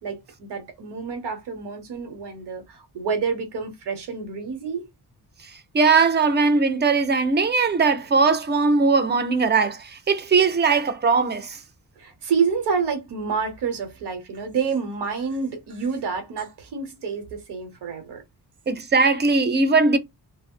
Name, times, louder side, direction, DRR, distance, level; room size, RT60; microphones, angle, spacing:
voice 1, 0.0-4.9 12.0-18.2, right 5 dB, 90° right, 0.9 m, -28 dB
voice 2, 5.7-11.6 18.7-20.0, right 4 dB, 30° right, 0.4 m, -19 dB
2.3 x 2.0 x 3.6 m
wide cardioid pair, 145°, 39 cm